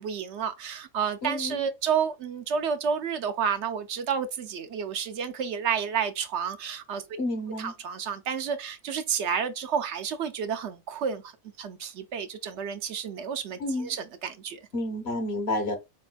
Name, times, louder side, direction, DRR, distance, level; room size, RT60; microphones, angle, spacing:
voice 1, 0.0-7.0 7.6-11.3 11.6-14.6, right 7 dB, 70° right, 0.9 m, -30 dB
voice 2, 1.2-1.6 7.2-7.7 13.6-13.9 14.7-15.8, left 1 dB, 60° left, 1.2 m, -30 dB
4.3 x 4.1 x 2.2 m
omnidirectional pair, 1.3 m